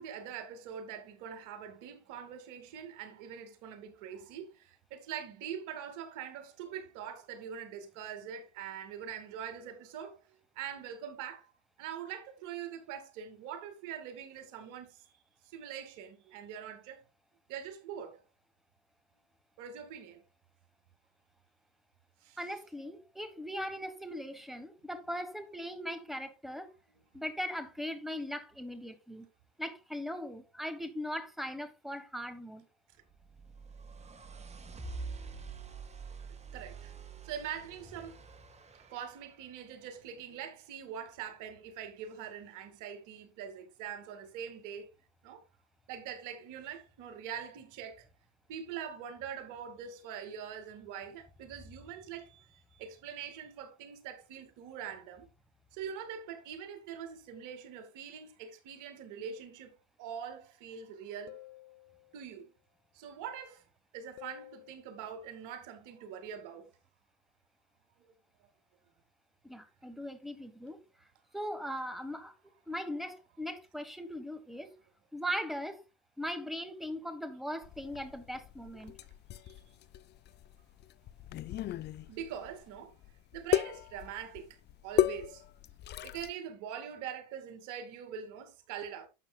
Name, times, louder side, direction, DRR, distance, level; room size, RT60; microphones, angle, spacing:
voice 1, 0.0-10.2 10.6-11.5 11.8-15.1 15.4-17.0 17.5-18.2 19.6-20.2 22.2-22.4 36.5-36.9 37.2-38.2 38.7-44.9 45.2-45.4 45.9-48.1 48.5-55.3 55.7-61.4 62.1-62.5 62.9-63.7 63.9-66.7 78.8-78.9 79.4-79.6 82.1-82.9 83.3-84.6 84.8-85.4 86.0-89.1, right 8 dB, 55° right, 2.4 m, -43 dB
voice 2, 22.4-26.7 27.1-29.3 29.6-32.6 69.4-70.8 71.3-72.3 72.7-74.7 75.1-75.8 76.2-78.9, equal, ahead, 1.5 m, -39 dB
sound 1, 33.1-39.2, right 4 dB, 20° right, 1.6 m, -46 dB
sound 2, 61.3-62.4 64.2-64.9, left 19 dB, 60° left, 0.9 m, -52 dB
sound 3, 77.6-86.3, left 12 dB, 30° left, 0.5 m, -35 dB
11.5 x 8.1 x 2.3 m
hypercardioid pair, 105°, 36 cm